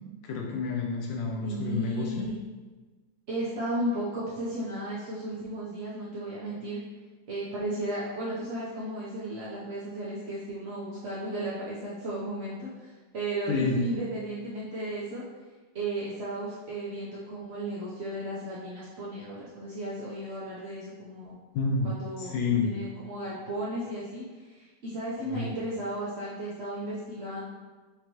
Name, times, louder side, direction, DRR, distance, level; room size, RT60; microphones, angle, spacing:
voice 1, 0.3-2.3 13.5-13.8 21.5-22.8 25.3-25.5, left 4 dB, 90° left, -1 dB, 1.4 m, -29 dB
voice 2, 1.4-2.4 3.3-6.8 7.3-15.2 15.7-21.4 21.8-27.4, right 1 dB, 55° right, -9 dB, 0.7 m, -34 dB
5.3 x 3.1 x 3.0 m, 1.3 s
omnidirectional pair, 2.0 m